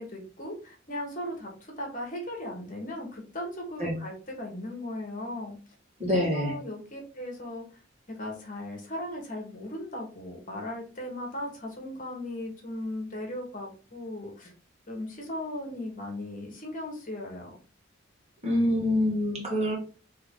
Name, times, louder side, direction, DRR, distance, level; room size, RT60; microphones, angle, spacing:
voice 1, 0.0-1.5 1.8-5.6 6.1-7.6 8.1-14.5 14.9-17.6, left 1 dB, 40° left, 0 dB, 1.4 m, -37 dB
voice 2, 6.0-6.5 18.4-19.8, left 1 dB, 35° right, -3 dB, 1.8 m, -26 dB
4.5 x 3.2 x 3.7 m, 0.36 s
head